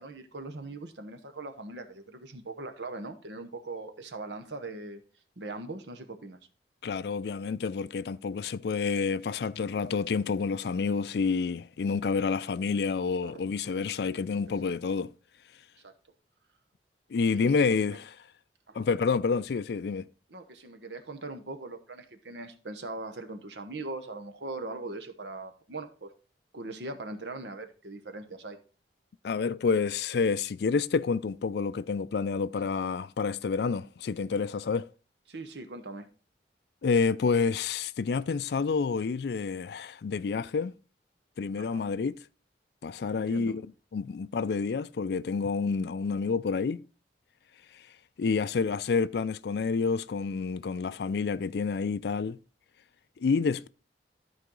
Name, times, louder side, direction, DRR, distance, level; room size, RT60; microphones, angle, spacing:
voice 1, 0.0-5.0 5.4-6.4 13.2-13.4 14.6-14.7 15.8-15.9 17.3-18.0 18.7-18.9 20.3-26.1 26.5-28.6 32.6-32.7 35.3-36.1 41.6-41.8 43.1-43.5, right 2 dB, 80° right, 1.1 m, -41 dB
voice 2, 6.8-15.1 17.1-18.2 18.7-20.1 29.2-34.9 36.8-40.7 41.4-42.2 42.8-43.6 43.9-46.9 47.7-47.8 48.2-52.4 53.2-53.7, left 5 dB, 65° left, 0.4 m, -29 dB
13.0 x 4.7 x 3.8 m
head